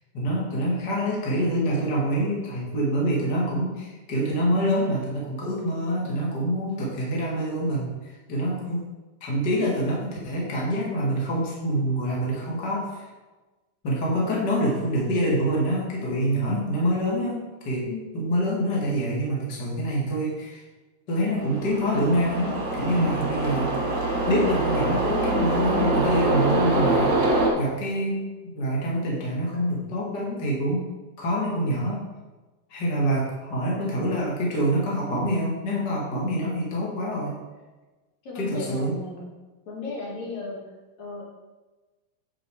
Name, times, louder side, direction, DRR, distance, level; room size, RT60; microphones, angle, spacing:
voice 1, 0.1-8.9 9.2-13.1 13.8-17.9 18.1-20.6 21.1-23.7 24.3-30.9 31.2-32.0 32.7-37.4 38.4-39.0, equal, 35° left, -4 dB, 2.1 m, -26 dB
voice 2, 16.4-16.8 17.8-18.5 38.2-39.3 39.7-41.2, left 3 dB, 55° left, -4 dB, 3.6 m, -36 dB
sound 1, 21.4-27.5, right 2 dB, 40° right, 1.9 m, -24 dB
9.1 x 7.5 x 4.7 m, 1.2 s
omnidirectional pair, 3.9 m